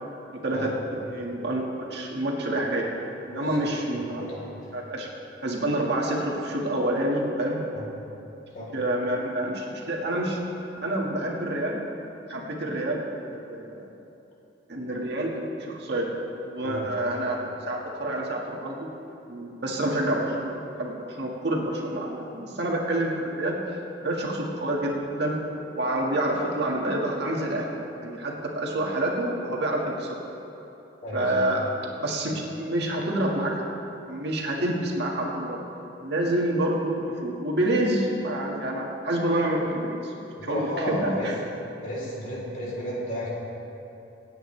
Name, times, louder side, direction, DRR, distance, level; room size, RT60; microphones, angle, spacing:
voice 1, 0.3-0.7 1.1-2.9 3.3-4.2 4.7-5.1 5.4-7.6 8.7-10.4 10.8-11.9 12.1-13.1 13.5-13.9 14.7-16.1 16.4-18.9 19.3-23.6 24.0-25.3 25.7-27.8 28.0-30.2 31.1-31.7 32.0-33.6 34.1-35.6 36.0-40.1 40.4-41.4, right 1 dB, 60° right, -2 dB, 1.9 m, -28 dB
voice 2, 3.3-3.7 4.1-4.7 7.7-7.8 8.5-8.7 16.6-16.9 31.0-31.3 40.3-41.3 41.8-43.3, equal, 40° left, -5 dB, 3.6 m, -33 dB
26.0 x 9.2 x 3.3 m, 2.9 s
head